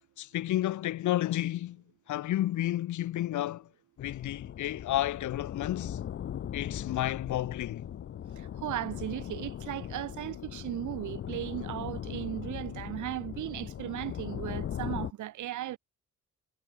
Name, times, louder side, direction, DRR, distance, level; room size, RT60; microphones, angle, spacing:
voice 1, 0.2-3.7 4.0-6.0 6.5-7.8, left 14 dB, 75° left, 1.3 m, -31 dB
sound 1, 4.0-15.1, left 10 dB, 45° left, 0.7 m, -39 dB
voice 2, 8.6-15.8, right 14 dB, 80° right, 2.3 m, -36 dB
cardioid pair, 90°, 30 cm